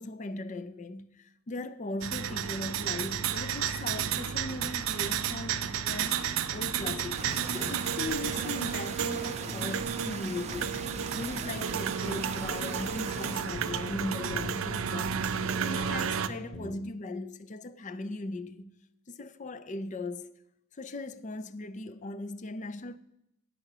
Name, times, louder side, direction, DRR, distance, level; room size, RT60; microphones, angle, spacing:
voice 1, 0.0-10.8 11.2-18.7 19.1-20.3 20.7-23.0, left 2 dB, 35° left, 0.5 m, -39 dB
sound 1, 2.0-16.3, right 8 dB, 75° right, 0.5 m, -32 dB
sound 2, 6.5-16.8, left 1 dB, 15° left, 1.0 m, -43 dB
sound 3, 7.1-13.5, right 4 dB, 30° right, 0.6 m, -40 dB
9.8 x 4.9 x 6.6 m
head